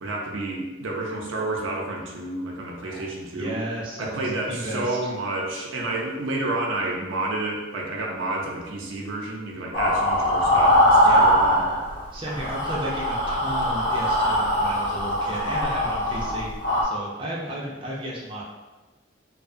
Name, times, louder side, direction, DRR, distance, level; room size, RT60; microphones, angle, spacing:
voice 1, 0.0-3.6 4.0-11.6, right 2 dB, 85° right, -1 dB, 0.5 m, -30 dB
voice 2, 2.8-5.0 11.0-11.2 12.1-16.5 16.8-18.4, right 1 dB, 25° right, -4 dB, 0.3 m, -33 dB
sound 1, 9.7-12.0 12.3-16.8, equal, 80° left, 0.8 m, -21 dB
2.7 x 2.1 x 2.5 m, 1.2 s
head